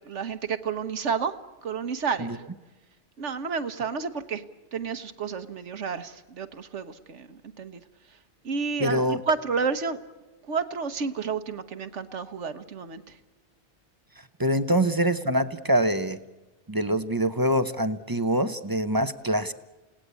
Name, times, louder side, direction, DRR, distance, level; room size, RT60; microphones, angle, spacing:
voice 1, 0.0-1.3 1.6-2.5 3.2-4.4 4.7-7.8 8.4-10.0 10.5-13.2, right 5 dB, 80° right, 10 dB, 1.5 m, -30 dB
voice 2, 8.8-9.2 14.4-16.2 16.7-19.5, right 1 dB, 20° right, 11 dB, 0.8 m, -24 dB
29.5 x 18.0 x 8.3 m, 1.2 s
omnidirectional pair, 1.2 m